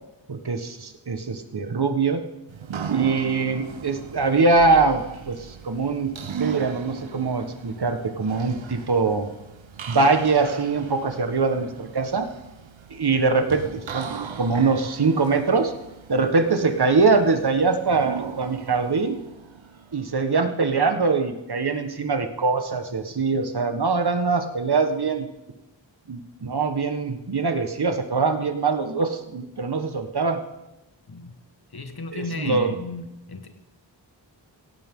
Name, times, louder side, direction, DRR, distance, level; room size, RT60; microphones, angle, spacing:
voice 1, 0.3-2.2 2.9-9.3 9.9-12.3 12.9-15.7 16.1-19.2 19.9-25.3 26.1-30.4 32.1-32.7, right 4 dB, 55° right, 7 dB, 1.5 m, -23 dB
sound 1, 2.5-20.3, right 7 dB, 85° right, 1.1 m, -37 dB
voice 2, 31.7-33.6, left 3 dB, 55° left, 7 dB, 1.6 m, -34 dB
17.0 x 16.5 x 3.8 m, 0.95 s
wide cardioid pair, 90°, 45 cm